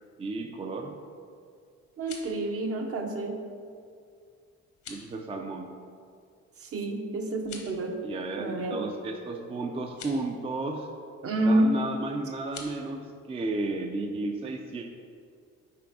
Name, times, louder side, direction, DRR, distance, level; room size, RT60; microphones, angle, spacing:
voice 1, 0.2-0.9 4.9-5.7 8.0-10.9 11.4-14.9, right 2 dB, 20° right, 3 dB, 0.4 m, -33 dB
sound 1, 1.8-2.4 4.7-5.1 7.3-7.8 9.8-10.2 12.4-12.7, left 5 dB, 70° left, 1.1 m, -45 dB
voice 2, 2.0-3.4 6.6-8.0 8.4-8.8 11.2-11.8, right 1 dB, 50° right, 3 dB, 0.8 m, -28 dB
6.0 x 3.4 x 4.8 m, 2.2 s
cardioid pair, 90°, 30 cm